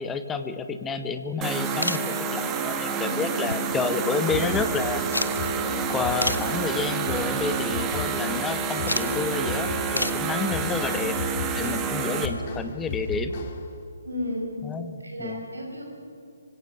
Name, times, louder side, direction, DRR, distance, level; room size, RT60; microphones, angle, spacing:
voice 1, 0.0-2.0 2.3-5.0 5.9-11.1 11.5-13.4 14.6-15.5, left 5 dB, 10° left, 10 dB, 1.2 m, -30 dB
sound 1, 1.4-12.3, right 5 dB, 15° right, 1.7 m, -28 dB
sound 2, 1.8-2.1 3.4-4.0 4.3-4.4 5.1-5.4 6.2-6.5 7.2-7.5 8.9-9.1 10.0-10.3 11.9-12.0 13.4-13.5 13.7-13.8, left 2 dB, 80° left, 1.1 m, -29 dB
sound 3, 4.3-13.8, left 4 dB, 30° left, 2.2 m, -36 dB
voice 2, 14.0-14.6 15.0-15.9, left 1 dB, 75° right, 1 dB, 7.4 m, -33 dB
25.5 x 25.0 x 7.1 m, 2.6 s
figure-of-eight pair, 135°, 0 cm